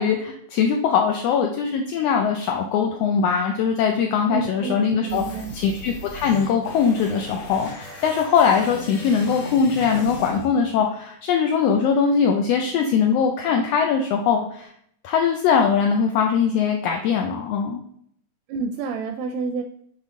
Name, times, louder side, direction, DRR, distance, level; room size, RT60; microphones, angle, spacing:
voice 1, 0.0-14.7 15.0-17.8, left 6 dB, 80° left, 2 dB, 1.4 m, -21 dB
voice 2, 4.3-5.5 18.5-19.6, right 4 dB, 80° right, 5 dB, 1.6 m, -29 dB
sound 1, 5.1-11.1, left 2 dB, 60° left, 2.4 m, -37 dB
7.6 x 4.8 x 3.6 m, 0.68 s
omnidirectional pair, 3.4 m